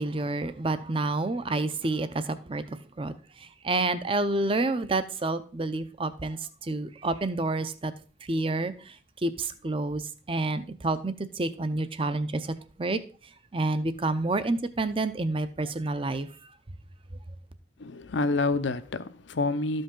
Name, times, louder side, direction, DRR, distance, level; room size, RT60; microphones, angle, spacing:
voice 1, 0.0-3.1 3.6-7.9 8.3-8.7 9.2-10.0 10.3-12.5 12.8-13.0 13.5-16.3, right 2 dB, 30° right, 0.5 m, -28 dB
voice 2, 17.8-19.8, left 3 dB, 75° left, 0.7 m, -28 dB
12.5 x 5.3 x 3.7 m
head